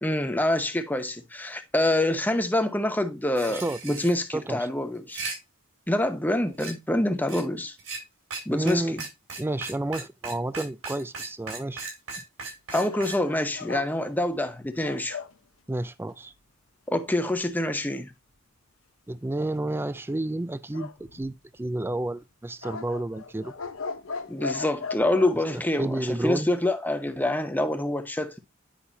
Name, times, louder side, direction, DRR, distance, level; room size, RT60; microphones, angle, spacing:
voice 1, 0.0-5.2 5.9-7.7 8.5-9.0 12.7-15.2 16.9-18.1 24.3-28.4, left 1 dB, 10° left, 0.9 m, -26 dB
sound 1, 3.4-4.1 4.9-5.4 6.6-6.7 7.3-7.4 7.8-8.0 8.3-8.4 8.7-8.8 9.0-13.2, right 4 dB, 75° right, 5.1 m, -36 dB
voice 2, 3.5-3.8 4.3-4.7 8.5-9.0 9.4-11.9 15.7-16.3 19.1-23.5 25.8-26.5, right 1 dB, 10° right, 0.4 m, -30 dB
sound 2, 12.7-15.4 20.7-21.6 22.6-25.4, left 4 dB, 75° left, 0.9 m, -37 dB
10.0 x 5.7 x 2.7 m
head